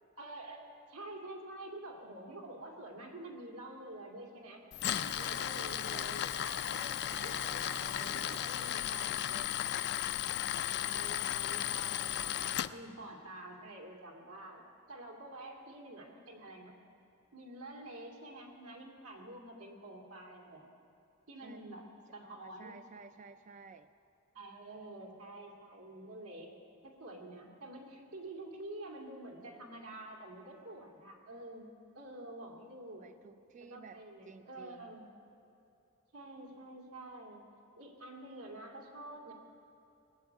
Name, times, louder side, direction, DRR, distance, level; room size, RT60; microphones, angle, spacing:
voice 1, 0.2-4.6 4.9-9.2 9.6-9.7 10.7-16.7 17.3-20.7 21.3-21.9 22.1-22.8 24.3-26.5 26.8-33.0 33.6-35.1 36.1-37.4 37.8-39.3, right 1 dB, 90° right, 0 dB, 2.6 m, -48 dB
Tools, 4.7-12.7, left 11 dB, 50° left, 0.4 m, -35 dB
voice 2, 4.9-6.1 7.1-9.5 21.4-21.7 22.2-23.9 32.9-34.9, right 5 dB, 35° right, 10 dB, 0.3 m, -53 dB
18.5 x 8.0 x 9.3 m, 2.9 s
head